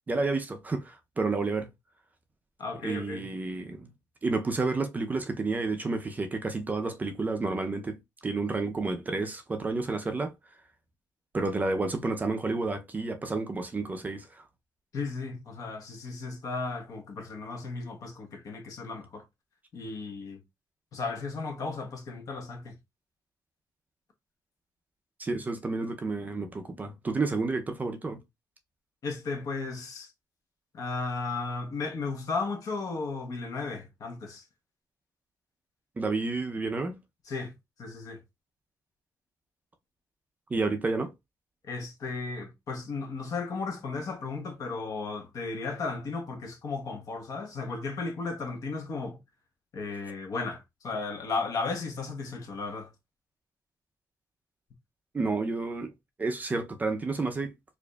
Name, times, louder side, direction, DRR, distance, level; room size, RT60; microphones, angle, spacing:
voice 1, 0.1-1.7 2.8-3.9 4.2-10.3 11.3-14.4 25.2-28.2 36.0-37.0 40.5-41.1 55.1-55.9 56.2-57.5, right 3 dB, 20° right, 0.5 m, -30 dB
voice 2, 2.6-3.3 14.9-19.2 19.7-20.4 20.9-22.8 29.0-30.1 30.7-34.4 37.3-37.5 37.8-38.2 41.6-49.2 49.7-52.9, left 4 dB, 50° left, 1.1 m, -35 dB
4.7 x 2.5 x 2.3 m
cardioid pair, 145°, 8 cm